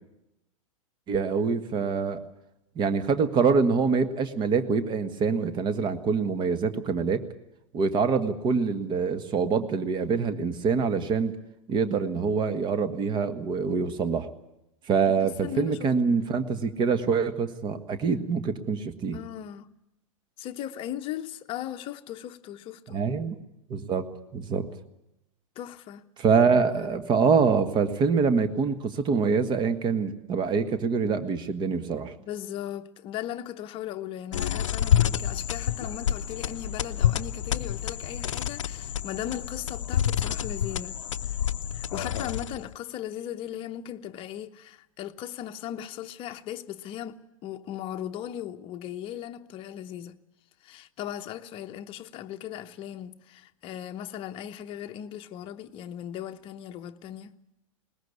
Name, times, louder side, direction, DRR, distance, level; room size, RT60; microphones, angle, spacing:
voice 1, 1.1-2.2 2.7-7.2 7.7-11.3 11.7-14.3 14.9-19.2 22.9-23.4 23.7-24.1 24.3-24.7 26.2-32.1, right 5 dB, 25° right, 1.6 m, -25 dB
voice 2, 15.1-16.2 19.1-19.7 20.4-23.0 25.6-26.1 26.7-27.0 32.2-41.4 41.7-50.2 50.6-57.3, left 11 dB, 30° left, 1.0 m, -38 dB
sound 1, 34.3-42.7, left 9 dB, 65° left, 0.7 m, -28 dB
21.0 x 20.0 x 8.3 m
figure-of-eight pair, 100°, 17 cm